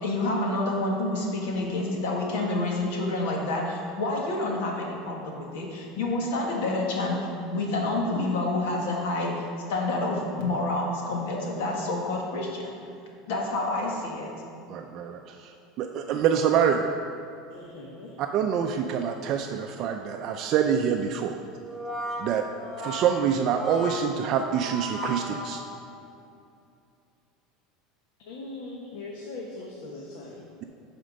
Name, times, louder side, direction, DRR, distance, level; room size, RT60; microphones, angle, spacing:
voice 1, 0.0-9.4 9.7-12.6 13.3-14.3, left 2 dB, 85° left, -1 dB, 1.8 m, -28 dB
voice 2, 14.7-16.9 18.2-21.4 22.2-22.5 22.8-25.6, right 8 dB, 40° right, 4 dB, 0.4 m, -26 dB
voice 3, 17.5-18.1 28.2-30.4, left 2 dB, 70° left, -2 dB, 1.1 m, -40 dB
Brass instrument, 21.6-26.1, equal, ahead, 2.2 m, -36 dB
11.5 x 4.3 x 5.1 m, 2.5 s
cardioid pair, 160°, 0 cm